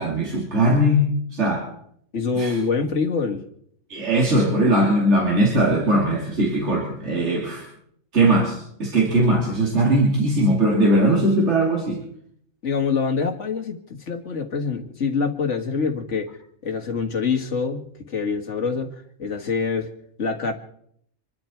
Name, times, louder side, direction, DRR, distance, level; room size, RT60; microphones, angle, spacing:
voice 1, 0.0-1.7 2.3-2.5 3.9-7.7 8.1-12.0, right 1 dB, 60° right, -2 dB, 3.1 m, -20 dB
voice 2, 2.1-3.4 12.6-18.9 19.2-19.9 20.2-20.5, left 5 dB, 65° left, 5 dB, 2.0 m, -25 dB
26.0 x 12.5 x 4.5 m, 0.69 s
omnidirectional pair, 1.3 m